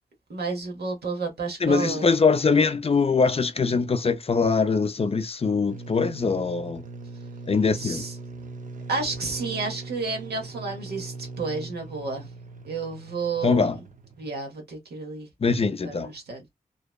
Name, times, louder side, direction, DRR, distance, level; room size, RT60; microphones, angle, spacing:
voice 1, 0.3-2.2 7.7-8.1 8.9-12.3 12.6-13.8 14.2-15.3 15.7-16.5, right 4 dB, 90° right, 0.9 m, -31 dB
voice 2, 1.6-6.8 7.5-8.0 13.4-13.8 15.4-16.1, left 4 dB, 35° left, 0.4 m, -22 dB
sound 1, 5.7-14.4, right 3 dB, 50° right, 0.5 m, -40 dB
2.7 x 2.1 x 2.2 m
cardioid pair, 40°, 17 cm